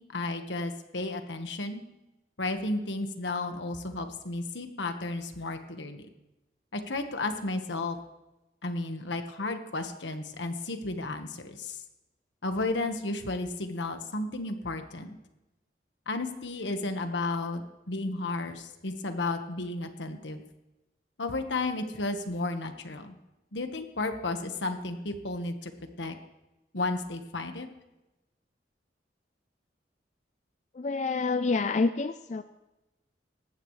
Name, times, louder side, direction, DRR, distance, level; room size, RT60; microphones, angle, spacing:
voice 1, 0.0-1.8 2.4-6.1 6.7-8.0 8.6-11.8 12.4-15.1 16.1-17.6 17.9-20.4 21.2-23.1 23.5-25.7 26.0-26.1 26.7-27.7, left 2 dB, 85° left, 7 dB, 1.4 m, -33 dB
voice 2, 30.7-32.4, left 3 dB, 40° left, 10 dB, 0.4 m, -27 dB
19.0 x 15.0 x 3.2 m, 0.98 s
head